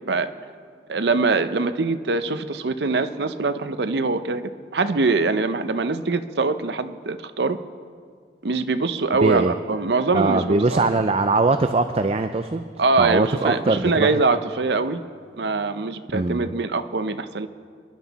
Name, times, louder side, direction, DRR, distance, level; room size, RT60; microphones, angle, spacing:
voice 1, 0.9-4.4 4.7-7.6 8.4-10.9 12.8-15.0 15.4-17.5, right 3 dB, 70° right, 10 dB, 0.7 m, -23 dB
voice 2, 9.2-9.5 10.1-12.7 13.0-14.2 16.1-16.5, right 3 dB, 35° right, 8 dB, 0.4 m, -21 dB
27.5 x 11.0 x 4.1 m, 2.1 s
head